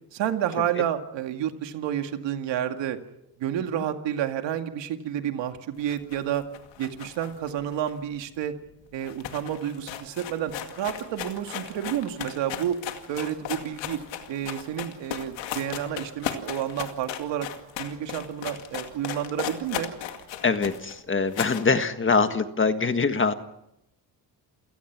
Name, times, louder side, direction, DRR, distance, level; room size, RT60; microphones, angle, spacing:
voice 1, 0.1-3.0 3.4-6.4 6.8-8.5 8.9-12.8 13.1-14.0 14.3-17.5 17.8-19.9, right 10 dB, 85° right, 6 dB, 2.3 m, -30 dB
sound 1, 5.8-8.4 8.7-8.8 9.0-21.7, left 10 dB, 90° left, 2.4 m, -36 dB
voice 2, 20.4-23.3, left 4 dB, 30° left, 9 dB, 1.6 m, -24 dB
29.0 x 17.5 x 6.1 m, 0.83 s
cardioid pair, 105°, 43 cm